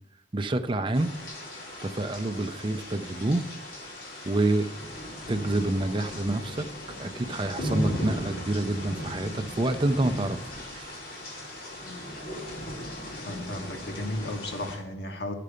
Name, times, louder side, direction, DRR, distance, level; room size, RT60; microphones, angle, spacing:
voice 1, 0.3-1.1 1.8-3.4 4.2-4.7 5.3-6.7 7.0-11.0, right 2 dB, 30° right, 8 dB, 0.5 m, -28 dB
sound 1, 0.9-14.8, left 1 dB, 55° left, 2.6 m, -37 dB
voice 2, 13.3-15.3, left 1 dB, 70° left, 3 dB, 1.3 m, -34 dB
12.0 x 6.7 x 5.1 m, 0.87 s
head